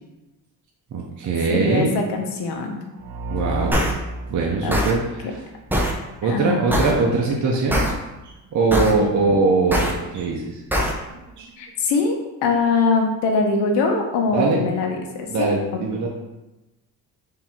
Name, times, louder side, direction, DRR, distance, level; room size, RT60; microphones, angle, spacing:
voice 1, 0.9-2.0 3.3-3.8 4.3-5.4 6.2-7.8 8.2-10.4 11.4-11.5 14.3-14.6 15.3-16.1, right 3 dB, 45° right, -2 dB, 0.8 m, -21 dB
voice 2, 1.5-2.8 4.6-4.8 6.2-6.6 8.9-9.2 11.6-15.5, left 4 dB, 80° left, 2 dB, 0.9 m, -22 dB
sound 1, 3.0-5.8, right 1 dB, 85° right, 0.5 m, -32 dB
sound 2, 3.7-3.9 4.7-4.9 5.7-5.9 6.7-6.9 7.7-7.9 8.7-8.9 9.7-9.9 10.7-10.9, equal, 5° right, 0.7 m, -20 dB
3.6 x 2.9 x 4.3 m, 1.0 s
cardioid pair, 95°, 40 cm